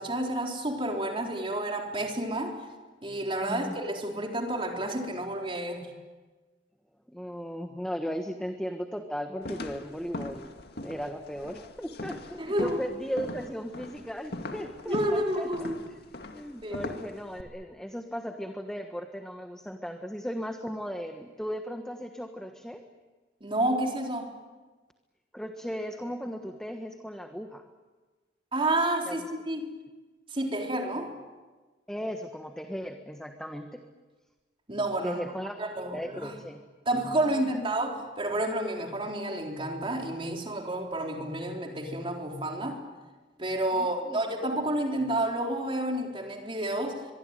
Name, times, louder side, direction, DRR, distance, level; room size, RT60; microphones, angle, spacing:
voice 1, 0.0-2.7 3.0-5.9 12.4-12.8 14.9-15.8 16.6-16.8 23.4-24.3 28.5-29.8 30.3-31.2 34.7-35.2 35.6-36.3 36.9-42.8 43.4-47.1, right 1 dB, 30° right, 4.0 m, -30 dB
voice 2, 7.1-10.5 10.8-15.7 16.3-22.8 25.3-27.6 29.1-29.2 31.9-33.8 35.0-35.6 35.9-36.6 37.2-37.5 43.8-44.2, equal, 5° left, 1.4 m, -36 dB
sound 1, 9.4-17.4, left 2 dB, 65° left, 2.1 m, -40 dB
24.0 x 23.0 x 9.1 m
head